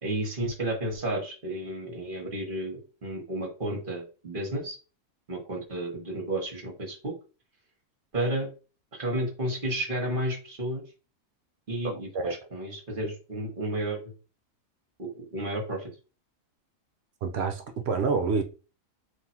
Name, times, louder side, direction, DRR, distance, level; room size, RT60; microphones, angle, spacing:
voice 1, 0.0-4.8 5.3-7.1 8.1-8.5 8.9-10.8 11.7-14.1 15.0-15.9, right 1 dB, 40° right, 2 dB, 1.2 m, -32 dB
voice 2, 11.8-12.3 17.2-18.4, right 4 dB, 60° right, 5 dB, 0.8 m, -28 dB
3.6 x 2.6 x 4.3 m, 0.34 s
omnidirectional pair, 1.4 m